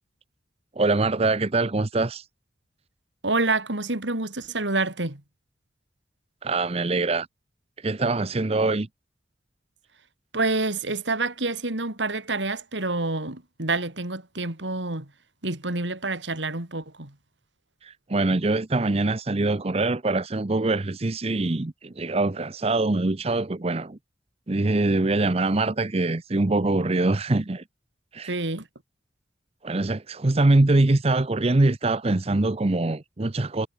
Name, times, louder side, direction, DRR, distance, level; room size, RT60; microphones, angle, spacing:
voice 1, 0.7-2.3 6.4-7.3 7.8-8.9 17.8-24.0 24.5-27.6 28.1-28.4 29.6-33.7, right 2 dB, 35° right, 0.7 m, -23 dB
voice 2, 3.2-5.2 10.3-15.1 15.4-17.1 28.3-28.7, right 3 dB, 85° right, 3.5 m, -27 dB
head